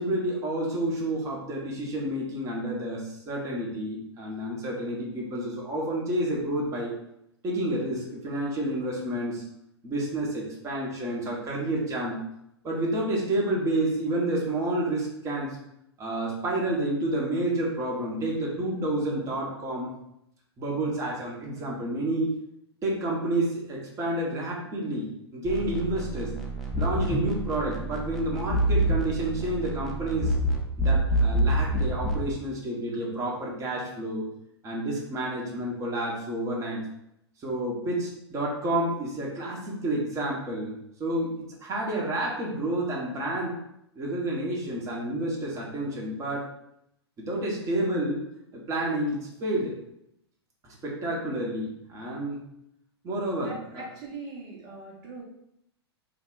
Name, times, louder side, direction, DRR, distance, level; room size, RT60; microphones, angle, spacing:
voice 1, 0.0-6.9 7.4-9.4 9.8-12.2 12.6-15.6 16.0-19.9 20.6-22.4 22.8-26.3 26.8-30.3 30.8-34.2 34.6-36.8 37.4-40.7 41.0-41.3 41.6-43.6 43.9-46.5 47.2-48.2 48.5-49.8 50.6-52.4 53.0-53.9, right 1 dB, 20° right, -3 dB, 1.1 m, -29 dB
sound 1, 25.5-32.3, right 1 dB, ahead, 0.6 m, -27 dB
voice 2, 53.4-55.2, right 3 dB, 45° right, -3 dB, 1.0 m, -41 dB
4.0 x 2.4 x 3.8 m, 0.79 s
figure-of-eight pair, 105°, 14 cm